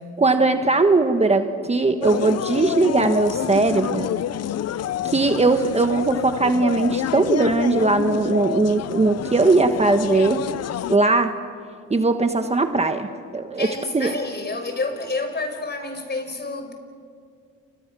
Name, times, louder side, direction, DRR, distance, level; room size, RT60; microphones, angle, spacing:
voice 1, 0.2-4.1 5.0-10.4 10.9-11.3 11.9-13.7 13.9-14.2, right 3 dB, 20° right, 6 dB, 1.4 m, -19 dB
sound 1, 2.0-11.0, left 11 dB, 55° left, 0.7 m, -28 dB
voice 2, 13.6-16.7, left 3 dB, 35° left, 6 dB, 5.3 m, -29 dB
29.5 x 29.5 x 6.2 m, 2.2 s
cardioid pair, 90°, 30 cm